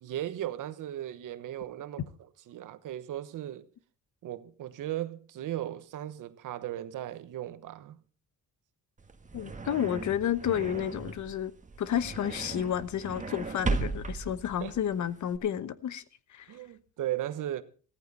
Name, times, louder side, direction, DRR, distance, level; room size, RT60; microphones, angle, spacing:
voice 1, 0.0-3.7 4.2-8.0 14.6-14.7 16.5-17.6, right 12 dB, 80° right, 1.1 m, -37 dB
sound 1, 9.0-15.4, right 3 dB, 25° right, 1.5 m, -37 dB
voice 2, 9.3-11.5 11.8-16.0 16.3-16.5, left 9 dB, 70° left, 1.1 m, -31 dB
14.5 x 14.5 x 4.2 m
cardioid pair, 95°, 31 cm